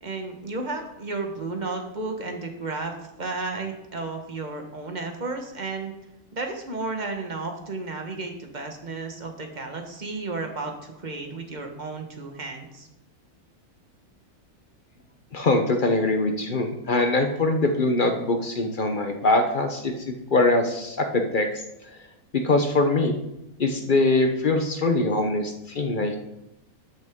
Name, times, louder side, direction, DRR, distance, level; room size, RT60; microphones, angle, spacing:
voice 1, 0.0-5.9 6.3-12.9, right 3 dB, 30° right, 4 dB, 1.2 m, -33 dB
voice 2, 15.3-22.0 22.3-23.2 23.6-26.2, left 2 dB, 45° left, 5 dB, 0.7 m, -23 dB
13.0 x 6.2 x 3.6 m, 0.88 s
omnidirectional pair, 1.6 m